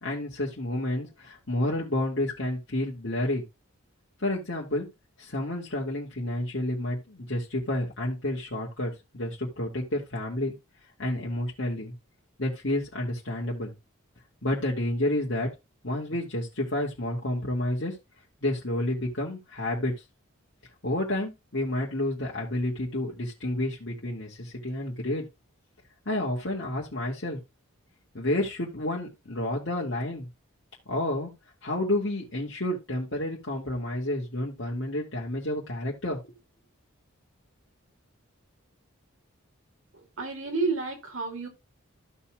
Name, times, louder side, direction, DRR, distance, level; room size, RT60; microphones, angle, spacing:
voice 1, 0.0-3.4 4.2-4.9 5.2-10.5 11.0-11.9 12.4-13.7 14.4-15.5 15.8-17.9 18.4-19.9 20.8-25.2 26.1-27.4 28.1-30.3 30.9-31.3 31.6-36.2, left 1 dB, 55° left, 2.1 m, -30 dB
voice 2, 39.9-41.5, right 4 dB, 70° right, 2.6 m, -30 dB
14.5 x 5.6 x 2.4 m
head